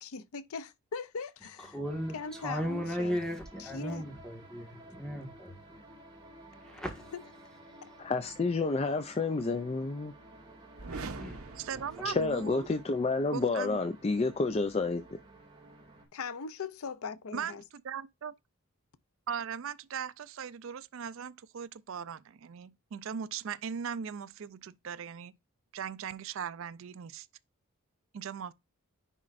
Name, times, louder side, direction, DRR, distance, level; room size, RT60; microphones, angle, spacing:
voice 1, 0.0-1.8 2.1-3.2 3.6-4.1 7.1-7.2 7.8-7.9 16.1-17.6, left 5 dB, 80° left, 0.6 m, -40 dB
voice 2, 1.7-6.0 6.6-7.1 10.9-12.2, equal, 5° left, 1.6 m, -37 dB
sound 1, 1.8-16.1, right 1 dB, 20° right, 2.4 m, -53 dB
voice 3, 8.0-10.1 12.1-15.2, left 3 dB, 30° left, 0.4 m, -30 dB
sound 2, 10.8-12.8, right 3 dB, 80° right, 0.9 m, -43 dB
voice 4, 11.6-12.7 13.3-13.8 17.3-18.3 19.3-25.3 25.7-27.3 28.1-28.5, right 7 dB, 65° right, 0.4 m, -39 dB
9.9 x 4.3 x 2.5 m
head